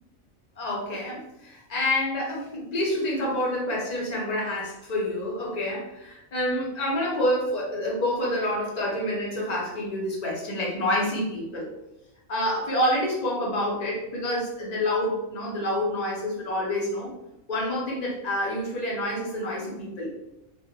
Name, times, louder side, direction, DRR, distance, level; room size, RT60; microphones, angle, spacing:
voice 1, 0.6-11.7 12.3-17.1 17.5-20.1, left 1 dB, 45° left, -4 dB, 0.5 m, -28 dB
2.3 x 2.0 x 2.7 m, 0.89 s
omnidirectional pair, 1.4 m